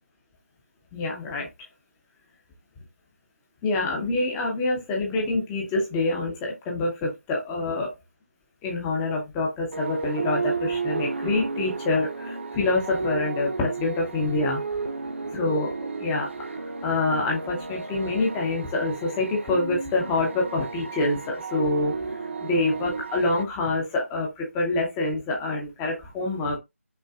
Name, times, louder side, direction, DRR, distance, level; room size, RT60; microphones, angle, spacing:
voice 1, 0.9-1.5 3.6-7.9 8.6-14.6 15.3-16.3 16.8-21.9 22.4-26.6, left 2 dB, 5° left, -1 dB, 0.5 m, -26 dB
sound 1, 9.7-23.4, right 4 dB, 50° right, 0.6 m, -33 dB
5.4 x 2.9 x 2.3 m, 0.21 s
figure-of-eight pair, 165°, 8 cm